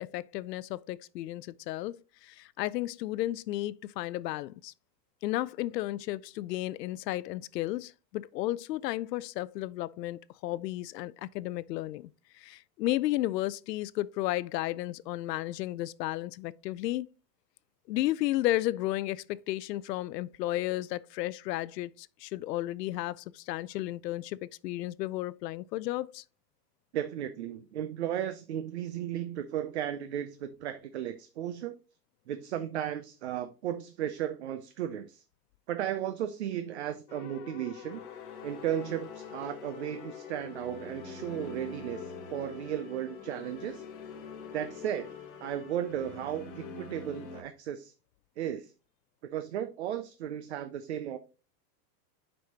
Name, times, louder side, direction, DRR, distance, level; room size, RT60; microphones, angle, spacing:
voice 1, 0.0-2.0 2.2-4.7 5.2-12.1 12.3-17.1 17.9-24.4 24.6-26.2, left 16 dB, 85° left, 0.6 m, -33 dB
voice 2, 26.9-31.8 32.3-35.2 35.7-38.0 38.4-43.8 44.5-45.1 45.4-47.9 48.4-48.7 49.2-51.2, right 10 dB, 45° right, 0.4 m, -35 dB
sound 1, 37.1-46.4, left 10 dB, 65° left, 0.9 m, -48 dB
sound 2, 37.9-47.4, left 4 dB, 35° left, 1.0 m, -46 dB
7.7 x 5.5 x 2.8 m
supercardioid pair, 180°, 48 cm